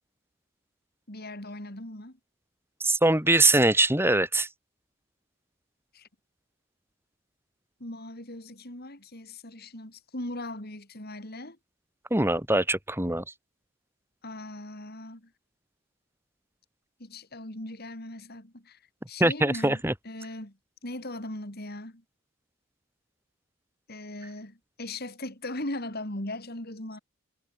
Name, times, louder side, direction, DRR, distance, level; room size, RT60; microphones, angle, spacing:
voice 1, 1.1-2.2 5.9-6.1 7.8-11.6 14.2-15.3 17.0-18.8 19.1-20.6 20.8-22.0 23.9-27.0, left 1 dB, 45° left, 4.4 m, -39 dB
voice 2, 2.8-4.5 12.1-13.2 19.2-19.9, right 2 dB, 10° right, 3.4 m, -22 dB
head